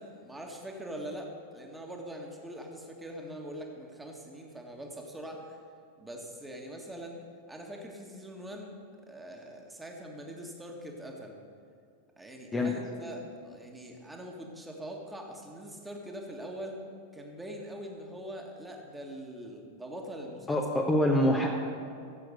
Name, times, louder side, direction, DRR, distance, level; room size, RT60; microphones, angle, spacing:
voice 1, 0.0-5.6 6.0-7.2 7.5-8.7 9.0-11.4 12.2-16.8 17.1-20.6, equal, 5° right, 1 dB, 1.7 m, -43 dB
voice 2, 20.5-21.5, left 1 dB, 15° left, -1 dB, 1.1 m, -25 dB
16.0 x 7.7 x 5.3 m, 2.4 s
figure-of-eight pair, 90°, 0 cm